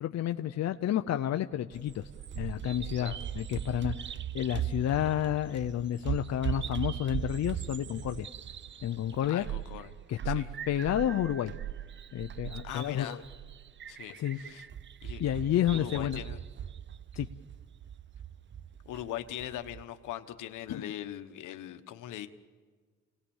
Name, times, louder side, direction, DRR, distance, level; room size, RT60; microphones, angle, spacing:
voice 1, 0.0-2.1 2.3-8.3 8.8-9.5 10.1-11.5 12.1-13.2 14.2-14.4 15.2-16.2 17.1-17.3 20.7-20.9, left 11 dB, 60° left, 7 dB, 0.7 m, -30 dB
Bird vocalization bird call bird song, 1.7-19.8, right 10 dB, 40° right, 0.6 m, -39 dB
voice 2, 9.3-9.9 10.2-10.5 12.6-13.2 13.9-14.7 15.0-15.2 15.7-16.4 18.8-22.3, left 12 dB, 85° left, 9 dB, 1.3 m, -40 dB
28.5 x 18.5 x 7.2 m, 1.5 s
cardioid pair, 90°, 30 cm